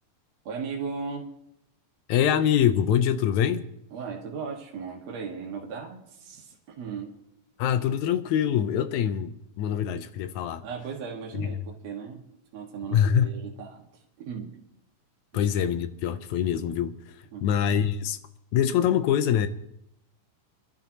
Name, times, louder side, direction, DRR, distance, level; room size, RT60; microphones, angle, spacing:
voice 1, 0.4-1.3 3.9-7.2 10.6-12.2 12.5-13.9 14.2-14.6 15.3-15.4 17.3-17.5, right 5 dB, 60° right, 2.8 m, -37 dB
voice 2, 2.1-3.7 7.6-10.6 11.3-11.5 12.9-13.3 15.3-16.9 17.4-18.2 18.5-19.5, left 9 dB, 80° left, 2.1 m, -24 dB
25.5 x 13.0 x 2.9 m
omnidirectional pair, 3.5 m